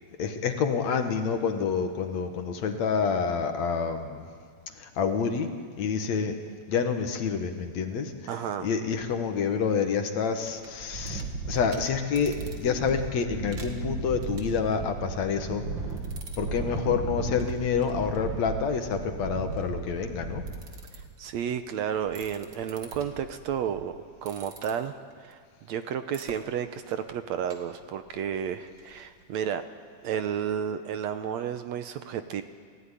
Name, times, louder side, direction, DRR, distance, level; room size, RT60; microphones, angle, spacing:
voice 1, 0.2-4.3 4.8-5.5 5.8-6.4 6.7-15.6 16.4-20.4, left 6 dB, 65° left, 6 dB, 2.6 m, -28 dB
voice 2, 8.3-8.7 20.9-25.4 25.7-29.7 30.0-32.4, right 8 dB, 70° right, 9 dB, 1.9 m, -32 dB
sound 1, 10.4-21.2 22.0-24.0 24.3-24.7 26.1-26.3 26.9-27.1 27.5-27.6 27.8-27.9 28.2-28.3 28.8-28.9 29.3-29.4, right 3 dB, 40° right, 2.2 m, -36 dB
29.5 x 15.5 x 9.9 m, 2.1 s
omnidirectional pair, 3.6 m